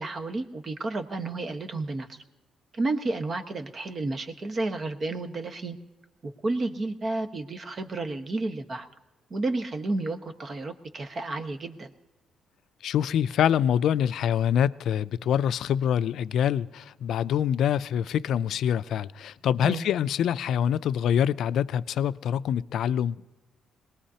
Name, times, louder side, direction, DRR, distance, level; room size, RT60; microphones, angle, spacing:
voice 1, 0.0-2.2 2.7-5.8 6.2-8.9 9.3-11.9 19.6-19.8, right 2 dB, 40° right, 1.3 m, -31 dB
voice 2, 12.8-23.2, left 9 dB, 75° left, 0.4 m, -25 dB
22.0 x 19.0 x 2.8 m
cardioid pair, 90°, 0 cm